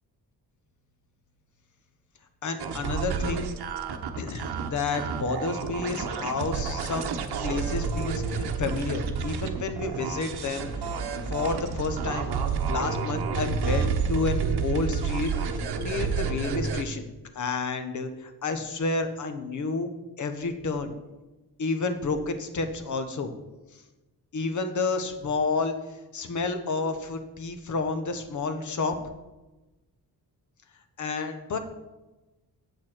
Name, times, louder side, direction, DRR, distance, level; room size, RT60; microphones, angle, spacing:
voice 1, 2.4-3.5 4.2-7.1 7.4-11.0 11.3-12.3 12.7-17.1 17.3-19.9 20.2-20.9 21.6-23.3 24.3-28.9 31.0-31.6, left 4 dB, 45° left, 8 dB, 1.0 m, -30 dB
sound 1, 2.6-16.8, right 5 dB, 70° right, 1.0 m, -30 dB
8.4 x 7.9 x 4.4 m, 1.1 s
wide cardioid pair, 160°, 40 cm